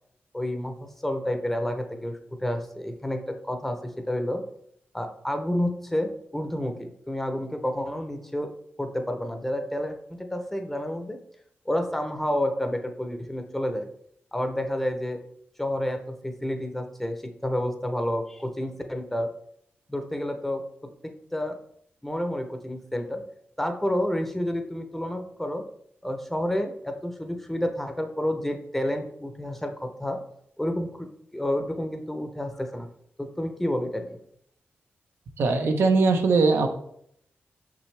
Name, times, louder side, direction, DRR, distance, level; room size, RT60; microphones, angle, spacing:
voice 1, 0.3-4.4 4.9-8.5 8.8-11.2 11.7-13.9 14.3-15.2 15.6-19.3 19.9-20.6 21.3-21.6 22.0-23.2 23.6-25.6 26.0-30.2 30.6-31.1 31.3-32.9 33.2-34.2, left 1 dB, 5° left, 5 dB, 0.6 m, -29 dB
voice 2, 35.4-36.7, right 3 dB, 90° right, 5 dB, 0.9 m, -20 dB
6.1 x 6.0 x 3.3 m, 0.69 s
wide cardioid pair, 145°, 4 cm